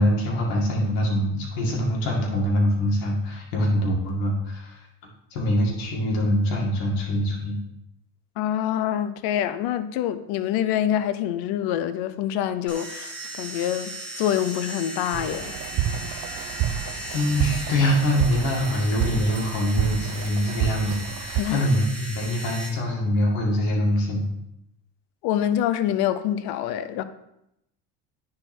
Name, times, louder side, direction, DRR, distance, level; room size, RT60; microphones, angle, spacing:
voice 1, 0.0-4.8 5.3-7.5 16.1-16.2 17.1-24.3, equal, 85° left, 2.1 m, -24 dB
voice 2, 8.4-15.6 21.4-21.7 25.2-27.0, left 11 dB, 70° left, 0.7 m, -26 dB
sound 1, 12.7-22.7, right 1 dB, ahead, 1.7 m, -37 dB
sound 2, 15.1-21.4, right 11 dB, 55° right, 0.6 m, -29 dB
9.7 x 3.9 x 4.4 m
supercardioid pair, 100°, 40 cm